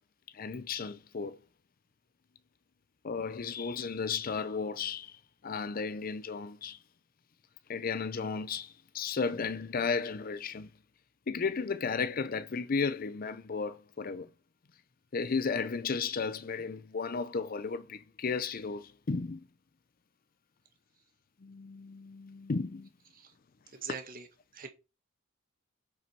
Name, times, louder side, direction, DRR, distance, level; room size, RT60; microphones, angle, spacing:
voice 1, 0.3-1.4 3.0-5.2 5.4-6.8 7.7-10.7 11.3-14.3 15.1-19.5 21.4-22.9, left 5 dB, 45° left, 0.5 m, -34 dB
voice 2, 23.7-24.3 24.5-24.7, right 5 dB, 45° right, 1.7 m, -42 dB
8.2 x 5.3 x 4.5 m
head